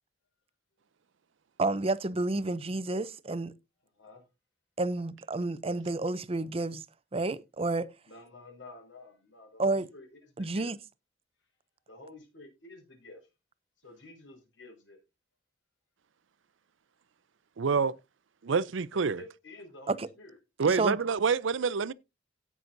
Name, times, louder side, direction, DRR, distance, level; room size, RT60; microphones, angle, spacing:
voice 1, 1.6-3.5 4.8-6.8 7.1-7.9 9.6-9.9 10.4-10.8 19.9-20.1 20.7-21.0, right 2 dB, 30° right, 0.6 m, -30 dB
voice 2, 8.1-10.7 11.9-13.2 13.8-15.0 18.9-20.4, left 2 dB, 75° left, 5.4 m, -51 dB
voice 3, 17.6-18.0 18.4-19.2 20.6-21.9, right 5 dB, 80° right, 0.5 m, -27 dB
17.5 x 6.2 x 2.6 m
head